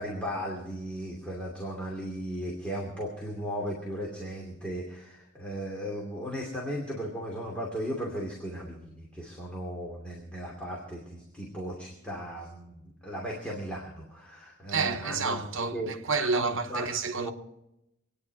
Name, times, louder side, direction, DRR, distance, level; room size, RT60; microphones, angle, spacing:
voice 1, 0.0-15.4 15.7-15.9 16.2-17.3, equal, 5° left, 2.6 m, -36 dB
voice 2, 14.7-17.3, right 4 dB, 70° right, 1.0 m, -29 dB
25.0 x 9.9 x 4.7 m
head